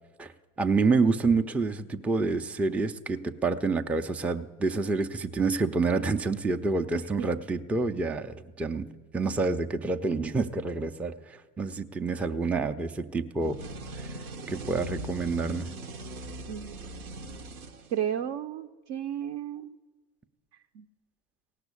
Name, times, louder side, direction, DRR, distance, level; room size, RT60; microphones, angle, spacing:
voice 1, 0.6-8.9 9.1-11.1 11.6-13.6 14.0-14.1 14.5-15.7, right 4 dB, 5° right, 7 dB, 0.3 m, -28 dB
sound 1, 13.4-18.3, right 1 dB, 85° right, 0.8 m, -40 dB
voice 2, 16.5-17.3 17.9-19.8 20.8-20.9, right 9 dB, 55° right, 5 dB, 0.6 m, -34 dB
17.0 x 6.1 x 8.3 m, 1.4 s
figure-of-eight pair, 70°, 42 cm